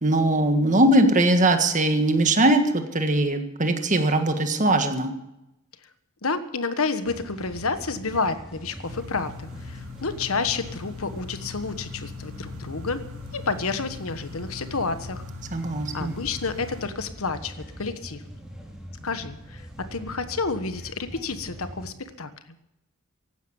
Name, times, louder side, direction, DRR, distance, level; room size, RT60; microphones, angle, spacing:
voice 1, 0.0-5.1 15.5-16.1, right 1 dB, 35° right, 6 dB, 1.7 m, -21 dB
voice 2, 6.2-13.0 13.3-15.2 15.9-18.2 19.0-22.3, left 4 dB, 70° left, 10 dB, 1.4 m, -30 dB
sound 1, 7.0-21.9, equal, 5° right, 4.0 m, -42 dB
sound 2, 8.8-16.9, left 5 dB, 65° right, 3.1 m, -41 dB
16.0 x 12.0 x 7.1 m, 0.89 s
head